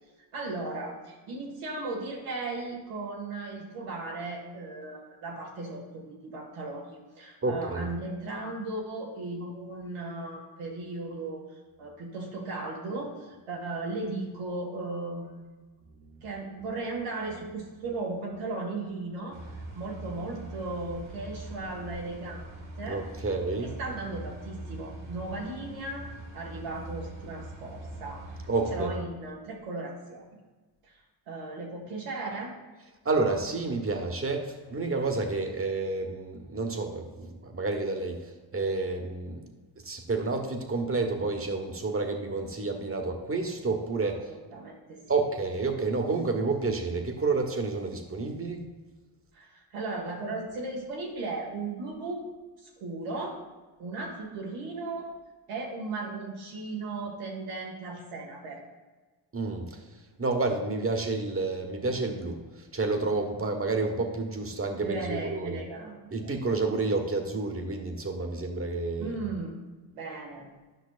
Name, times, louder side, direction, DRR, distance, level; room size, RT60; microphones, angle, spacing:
voice 1, 0.3-11.4 11.8-15.4 16.2-22.4 22.8-23.0 23.6-30.2 30.8-31.0 31.3-32.5 44.3-45.0 49.3-52.2 52.6-53.4 53.8-55.1 55.5-58.6 64.8-66.0 66.8-66.9 69.0-69.6 69.9-70.5, right 2 dB, 90° right, -2 dB, 2.0 m, -36 dB
voice 2, 7.4-7.9 9.4-9.5 22.9-23.7 28.5-28.9 33.0-39.4 39.8-44.2 45.1-48.6 59.3-59.8 60.2-65.6 66.1-69.2, right 3 dB, 25° right, 4 dB, 1.2 m, -30 dB
sound 1, 19.3-28.9, right 2 dB, 75° right, 2.4 m, -42 dB
10.5 x 5.7 x 2.5 m, 1.3 s
cardioid pair, 65°, 50 cm